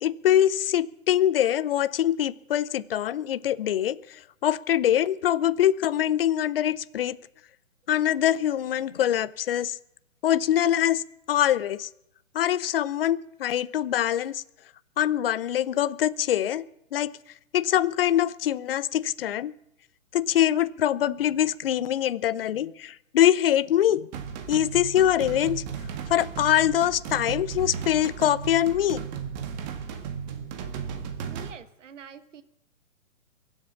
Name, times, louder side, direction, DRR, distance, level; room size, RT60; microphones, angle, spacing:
voice 1, 0.0-7.2 7.9-9.8 10.2-11.0 11.3-11.9 12.3-14.4 15.0-16.6 16.9-17.1 17.5-19.5 20.1-24.1 24.5-25.6 26.1-29.0, left 11 dB, 45° left, 17 dB, 0.7 m, -24 dB
sound 1, 24.1-31.5, right 7 dB, 30° right, 1.7 m, -35 dB
voice 2, 31.2-32.4, right 7 dB, 60° right, 12 dB, 1.4 m, -46 dB
23.0 x 8.1 x 7.1 m, 0.81 s
hypercardioid pair, 140°, 41 cm